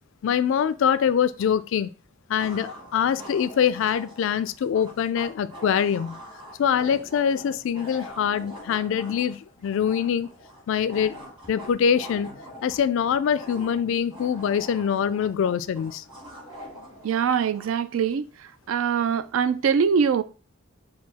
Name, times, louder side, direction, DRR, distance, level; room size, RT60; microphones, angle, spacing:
voice 1, 0.2-1.9 2.3-6.2 6.6-10.3 10.7-11.2 11.5-12.3 12.6-16.0, left 8 dB, 65° left, 0.3 m, -24 dB
sound 1, 1.4-1.5 2.4-17.7, equal, 25° right, 1.4 m, -44 dB
voice 2, 17.0-18.3 18.7-20.2, right 7 dB, 75° right, 0.3 m, -23 dB
4.6 x 2.3 x 4.2 m
head